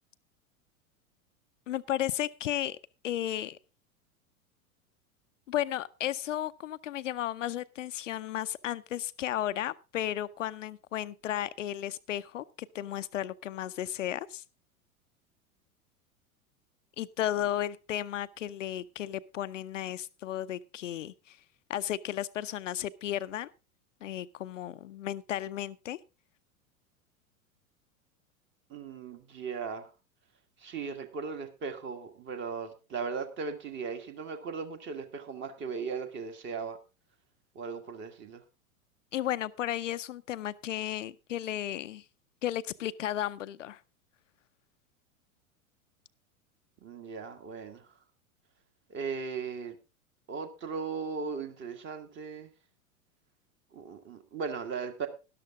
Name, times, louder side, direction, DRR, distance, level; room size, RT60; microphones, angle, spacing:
voice 1, 1.7-2.8 3.0-3.6 5.5-14.4 17.0-21.4 21.7-23.5 24.0-26.0 39.1-42.0 42.4-43.8, left 12 dB, 60° left, 0.6 m, -34 dB
voice 2, 28.7-29.9 30.6-36.8 37.6-38.4 46.8-47.9 48.9-49.8 50.3-52.5 53.7-55.1, right 5 dB, 25° right, 1.7 m, -37 dB
12.5 x 11.5 x 3.6 m
figure-of-eight pair, 90°, 42 cm